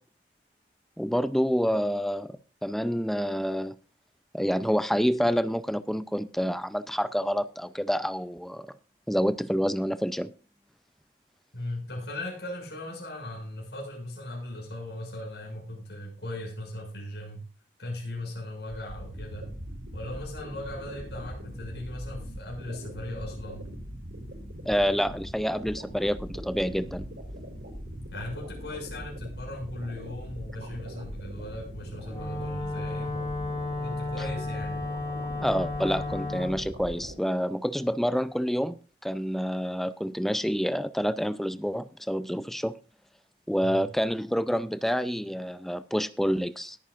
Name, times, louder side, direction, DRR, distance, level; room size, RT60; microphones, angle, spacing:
voice 1, 1.0-3.8 4.3-8.7 9.1-10.3 24.7-27.1 35.4-38.7 39.0-42.8 43.5-46.8, equal, ahead, 0.4 m, -28 dB
voice 2, 11.5-17.4 17.8-19.5 19.9-23.7 28.1-33.3 33.8-34.8 43.6-43.9, left 1 dB, 75° left, 6.7 m, -38 dB
sound 1, 18.7-37.2, equal, 85° right, 6.9 m, -41 dB
Wind instrument woodwind instrument, 32.1-36.6, left 2 dB, 30° left, 4.1 m, -33 dB
20.5 x 9.2 x 2.5 m
head